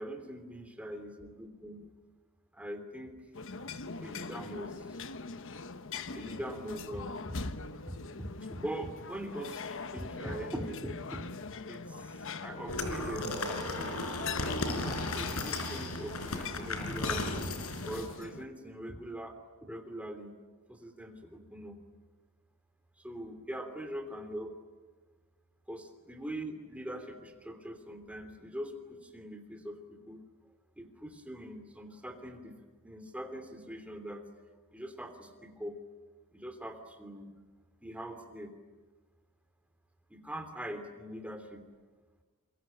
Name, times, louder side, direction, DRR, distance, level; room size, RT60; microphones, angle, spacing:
voice 1, 0.0-1.9 2.5-3.1 3.9-5.0 6.1-7.4 7.9-11.3 11.7-14.3 15.1-17.5 17.9-20.3 20.7-21.8 23.0-24.5 25.7-30.2 30.8-32.5 32.8-34.2 34.7-35.8 36.3-37.3 37.8-38.5 40.1-41.7, right 1 dB, 5° right, 6 dB, 3.0 m, -42 dB
sound 1, 3.3-18.4, left 4 dB, 60° left, 1.2 m, -42 dB
sound 2, 12.7-18.1, left 2 dB, 85° left, 4.6 m, -35 dB
28.0 x 23.0 x 9.0 m, 1.4 s
head